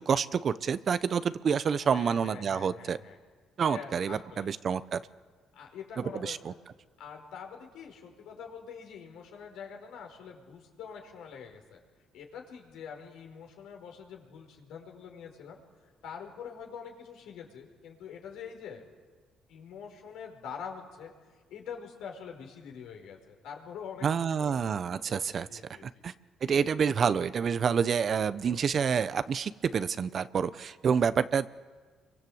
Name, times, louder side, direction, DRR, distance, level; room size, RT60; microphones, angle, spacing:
voice 1, 0.1-3.0 3.6-5.0 6.2-6.5 24.0-26.1 26.4-31.6, right 6 dB, 50° right, 14 dB, 0.9 m, -28 dB
voice 2, 1.6-3.2 3.7-4.5 5.5-6.4 7.0-11.8 12.1-15.6 16.0-18.8 19.5-21.1 21.5-24.7 25.5-25.8, left 7 dB, 80° left, 2 dB, 5.0 m, -45 dB
27.5 x 24.0 x 8.0 m, 1.5 s
cardioid pair, 85°, 0 cm